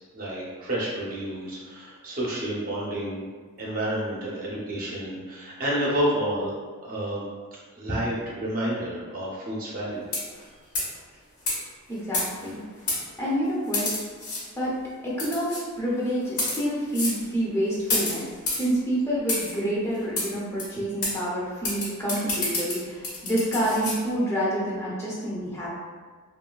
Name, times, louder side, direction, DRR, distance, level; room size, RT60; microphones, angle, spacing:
voice 1, 0.1-3.3 3.6-6.5 6.8-7.2 7.7-10.0, right 1 dB, 40° right, -5 dB, 0.6 m, -29 dB
sound 1, 10.0-10.4 10.7-11.0 11.5-11.6 12.1-12.5 12.9-13.0 13.7-14.4 15.2-15.6 16.3-16.6 16.9-17.2 17.9-18.7 19.3-19.5 20.2-20.3 20.6-20.7 21.0-21.1 21.6-24.0, left 2 dB, 80° left, 1.0 m, -28 dB
voice 2, 11.9-12.6 13.2-13.9 14.6-14.7 15.0-18.3 18.5-25.8, equal, 10° left, -7 dB, 0.6 m, -28 dB
3.2 x 2.3 x 2.2 m, 1.5 s
head